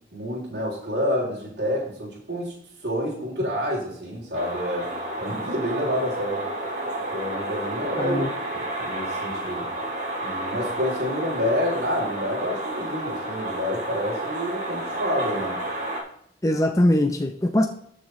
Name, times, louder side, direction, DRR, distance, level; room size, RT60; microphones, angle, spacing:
voice 1, 0.1-2.5 2.8-4.9 5.1-6.5 7.1-9.7 10.2-15.6, equal, 70° right, -4 dB, 3.3 m, -28 dB
sound 1, 4.3-16.0, right 1 dB, 45° right, 2.3 m, -31 dB
voice 2, 8.0-8.3 16.4-17.7, left 1 dB, 20° left, 5 dB, 0.6 m, -21 dB
13.5 x 6.5 x 3.1 m, 0.68 s
head